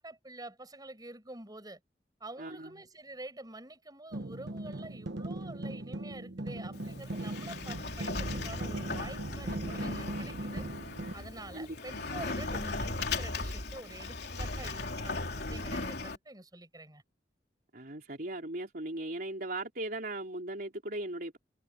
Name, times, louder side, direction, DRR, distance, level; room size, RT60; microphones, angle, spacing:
voice 1, 0.0-1.8 2.2-10.6 11.1-17.0, right 2 dB, 20° right, 7.7 m, -47 dB
voice 2, 2.4-2.8 11.5-12.0 17.7-21.4, right 1 dB, 55° right, 3.6 m, -38 dB
sound 1, 4.1-11.1, right 1 dB, 70° right, 1.2 m, -39 dB
Sliding door, 6.7-16.2, left 3 dB, 65° left, 3.5 m, -37 dB
head